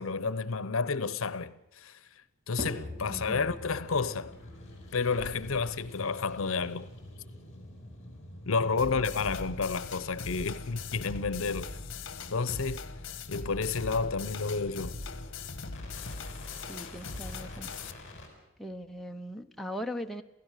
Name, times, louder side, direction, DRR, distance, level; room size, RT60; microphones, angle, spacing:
voice 1, 0.0-1.9 2.5-4.3 4.9-6.9 8.5-11.8 12.3-12.8 13.3-15.0, left 4 dB, 75° left, 0.8 m, -31 dB
sound 1, 2.6-19.0, left 1 dB, 25° right, 3.3 m, -49 dB
sound 2, 3.0-18.3, left 1 dB, 30° left, 5.3 m, -47 dB
voice 2, 3.1-3.5 8.9-9.0 16.7-17.7 18.6-20.2, equal, ahead, 0.7 m, -39 dB
sound 3, 8.8-17.9, left 4 dB, 60° left, 1.3 m, -41 dB
28.5 x 16.0 x 6.6 m
head